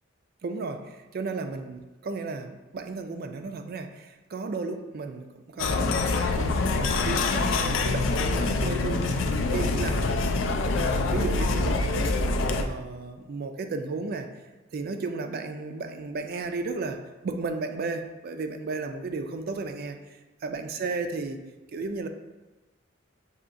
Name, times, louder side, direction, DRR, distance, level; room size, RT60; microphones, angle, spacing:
voice 1, 0.4-9.2 9.5-10.0 10.7-12.1 12.6-14.3 14.7-21.4 21.7-22.1, right 3 dB, 50° right, 7 dB, 0.4 m, -34 dB
sound 1, 5.6-12.6, left 3 dB, 65° left, 0.4 m, -25 dB
6.8 x 2.7 x 2.5 m, 1.1 s
head